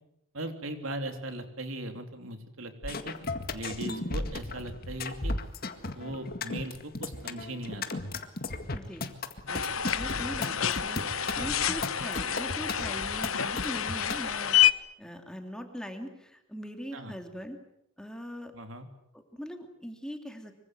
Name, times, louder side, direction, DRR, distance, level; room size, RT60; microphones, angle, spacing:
voice 1, 0.3-3.1 3.5-5.3 6.0-8.0 11.4-11.5 16.9-17.1 18.5-18.9, right 1 dB, 70° right, 6 dB, 3.5 m, -38 dB
sound 1, 2.8-14.2, left 2 dB, 45° left, 1.9 m, -35 dB
voice 2, 8.7-9.1 9.5-17.6 18.0-18.5 19.1-20.5, equal, 5° left, 4 dB, 2.9 m, -41 dB
sound 2, 9.5-14.7, left 10 dB, 75° left, 1.1 m, -28 dB
25.5 x 24.0 x 7.9 m, 0.80 s
head